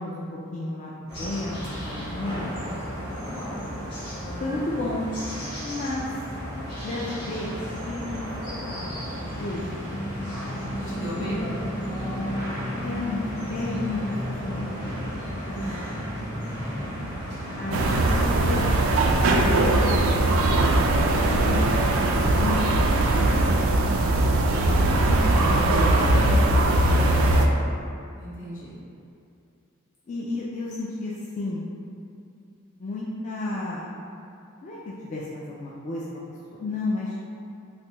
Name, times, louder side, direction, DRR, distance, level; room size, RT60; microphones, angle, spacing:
voice 1, 0.0-2.6 4.4-5.1 5.6-6.1 6.8-7.6 7.8-9.8 10.9-11.5 12.8-15.0 17.5-18.8 19.1-20.1 20.7-21.7 22.0-23.4 24.8-27.1 30.1-31.7 32.8-33.9 34.6-37.2, left 2 dB, 35° left, -6 dB, 0.3 m, -32 dB
sound 1, 1.1-18.3, equal, 50° left, 1.4 m, -33 dB
voice 2, 3.1-3.6 10.7-11.6 15.4-15.9 28.2-28.8, right 1 dB, 75° left, -9 dB, 1.1 m, -36 dB
sound 2, 17.7-27.5, right 2 dB, 85° right, 0.3 m, -20 dB
3.3 x 2.6 x 2.9 m, 2.5 s
head